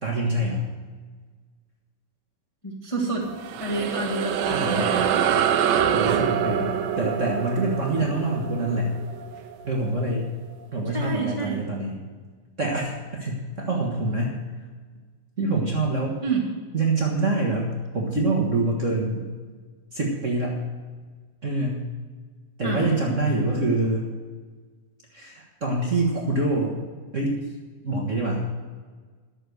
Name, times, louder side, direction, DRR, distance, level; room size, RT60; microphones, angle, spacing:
voice 1, 0.0-0.6 4.5-4.9 5.9-8.9 9.7-10.3 10.7-12.0 12.6-14.4 15.4-16.2 16.7-19.3 19.9-20.6 21.4-21.9 22.6-24.1 25.1-26.8 27.1-27.4 27.8-28.6, right 2 dB, 60° right, -2 dB, 0.7 m, -25 dB
voice 2, 2.6-3.2 3.6-5.1 10.9-11.6 16.2-16.4 22.6-22.8, right 3 dB, 20° left, -2 dB, 0.9 m, -28 dB
sound 1, 3.2-10.0, right 8 dB, 80° right, 2.4 m, -25 dB
12.0 x 6.9 x 7.9 m, 1.5 s
omnidirectional pair, 4.0 m